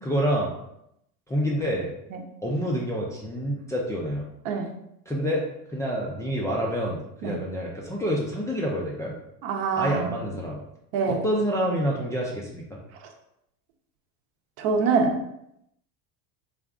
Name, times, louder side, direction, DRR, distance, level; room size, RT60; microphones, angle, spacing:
voice 1, 0.0-0.5 1.3-1.9 2.4-4.3 5.1-9.1 9.8-10.6 11.0-12.8, equal, 10° left, -4 dB, 0.3 m, -27 dB
voice 2, 9.4-10.1 10.9-11.2 14.6-15.2, right 5 dB, 65° right, 3 dB, 0.8 m, -24 dB
3.5 x 2.3 x 3.6 m, 0.78 s
supercardioid pair, 115°, 41 cm